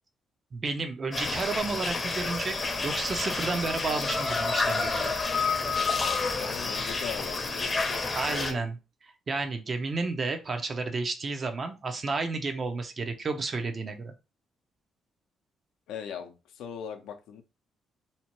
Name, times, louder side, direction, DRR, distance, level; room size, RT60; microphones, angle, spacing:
voice 1, 0.5-5.1 8.1-8.8 9.3-14.1, right 3 dB, 40° right, 0.5 m, -31 dB
sound 1, 1.1-8.5, left 4 dB, 30° left, 0.6 m, -29 dB
voice 2, 6.4-8.0 8.3-8.6 15.9-17.4, left 7 dB, 85° left, 0.5 m, -39 dB
2.7 x 2.1 x 2.9 m
cardioid pair, 90°, 0 cm